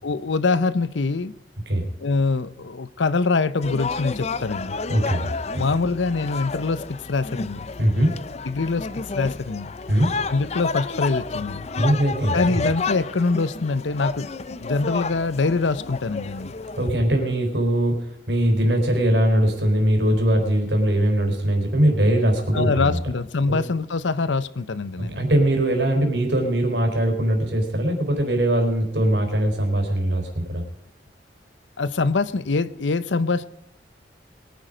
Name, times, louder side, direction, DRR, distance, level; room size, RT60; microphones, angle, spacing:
voice 1, 0.0-1.3 2.0-4.8 5.6-7.7 8.4-9.7 10.3-11.7 12.3-14.3 14.6-16.5 22.5-25.2 31.8-33.5, left 3 dB, 85° left, 0.7 m, -24 dB
sound 1, 3.6-16.9, left 4 dB, 35° left, 0.5 m, -31 dB
voice 2, 4.9-5.6 7.8-8.1 9.9-10.1 11.8-12.6 16.8-23.0 23.5-23.6 25.0-30.6, right 1 dB, 70° right, 4.1 m, -21 dB
22.0 x 9.3 x 5.1 m
head